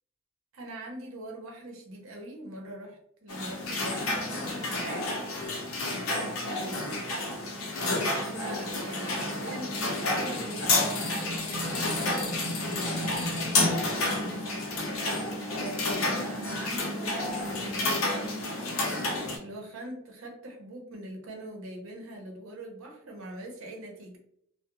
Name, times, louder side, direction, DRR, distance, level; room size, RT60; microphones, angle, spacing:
voice 1, 0.5-5.1 5.8-7.0 7.8-11.2 11.5-24.2, right 1 dB, 75° right, 1 dB, 0.7 m, -43 dB
sound 1, 3.3-19.4, left 2 dB, 85° left, 0.6 m, -30 dB
2.3 x 2.1 x 2.9 m, 0.69 s
head